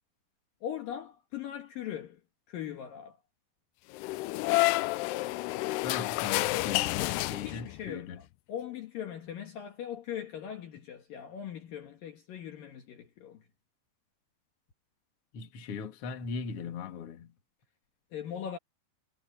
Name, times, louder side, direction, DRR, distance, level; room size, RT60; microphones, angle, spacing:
voice 1, 0.6-2.2 2.5-3.2 7.4-13.5 18.1-18.6, left 9 dB, 60° left, 2.9 m, -40 dB
sound 1, 3.9-7.9, left 20 dB, 85° left, 2.5 m, -29 dB
voice 2, 5.8-8.2 15.3-17.3, left 6 dB, 40° left, 2.4 m, -39 dB
omnidirectional pair, 5.0 m